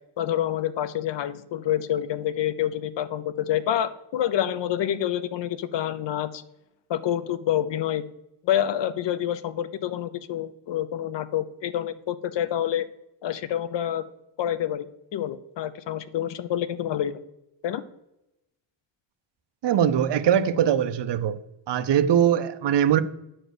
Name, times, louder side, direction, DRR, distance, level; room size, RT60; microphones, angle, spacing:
voice 1, 0.2-6.4 6.9-8.0 8.4-12.9 13.2-14.0 14.4-14.9 15.1-17.1 17.6-17.8, left 11 dB, 65° left, 0.7 m, -27 dB
voice 2, 19.6-21.4 21.7-23.0, right 9 dB, 60° right, 0.7 m, -21 dB
10.0 x 4.4 x 6.6 m
cardioid pair, 125°, 47 cm